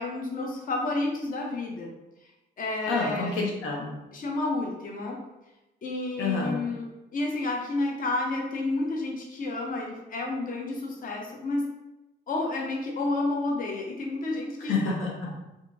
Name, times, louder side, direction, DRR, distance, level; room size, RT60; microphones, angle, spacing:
voice 1, 0.0-1.9 2.6-3.3 4.1-5.2 5.8-6.9 7.1-11.7 12.3-14.8, left 2 dB, 45° left, 0 dB, 0.6 m, -30 dB
voice 2, 2.9-4.0 6.2-6.6 14.6-15.3, left 3 dB, 85° left, -1 dB, 0.7 m, -28 dB
2.8 x 2.5 x 2.5 m, 0.96 s
cardioid pair, 90°, 20 cm